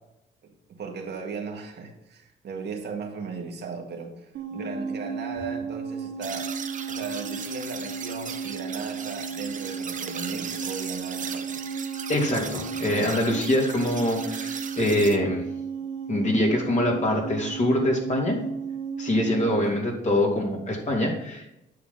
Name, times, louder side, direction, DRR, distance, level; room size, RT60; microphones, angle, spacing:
voice 1, 0.8-6.5 6.9-11.6 19.4-19.7, right 5 dB, 60° right, 2 dB, 1.9 m, -37 dB
sound 1, 4.3-19.7, right 5 dB, 80° right, 1.1 m, -34 dB
sound 2, 6.2-15.2, right 6 dB, 40° right, 1.0 m, -37 dB
voice 2, 12.1-15.4 16.1-18.4 19.0-21.7, left 1 dB, 35° left, 0 dB, 3.0 m, -24 dB
9.5 x 6.7 x 3.9 m, 0.86 s
cardioid pair, 90°, 20 cm